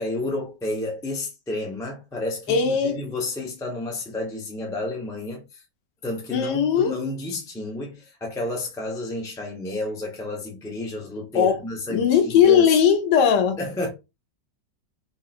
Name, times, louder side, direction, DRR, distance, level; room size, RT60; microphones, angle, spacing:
voice 1, 0.0-5.4 6.0-12.8 13.6-13.9, left 2 dB, 5° left, 0.3 m, -31 dB
voice 2, 2.5-3.0 6.3-6.9 11.3-11.6 11.9-13.6, left 8 dB, 75° left, 1.2 m, -19 dB
3.8 x 2.8 x 2.4 m
omnidirectional pair, 2.0 m